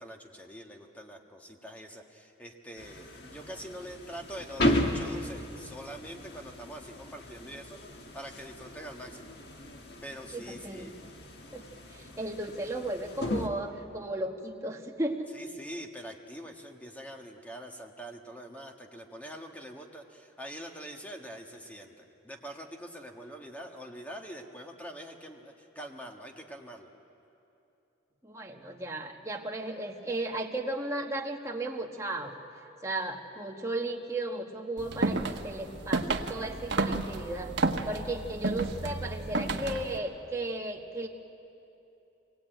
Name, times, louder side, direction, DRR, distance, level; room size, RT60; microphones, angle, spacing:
voice 1, 0.0-9.3 10.0-10.9 15.3-26.9, equal, 10° left, 2 dB, 1.5 m, -44 dB
sound 1, 2.8-13.5, left 1 dB, 55° left, 1.6 m, -35 dB
voice 2, 10.3-11.1 11.5-15.3 28.2-32.4 32.8-37.5 37.8-41.1, right 2 dB, 15° right, 1 dB, 1.5 m, -35 dB
sound 2, 34.8-40.0, right 3 dB, 65° right, 1.1 m, -31 dB
23.0 x 18.5 x 9.1 m, 2.8 s
head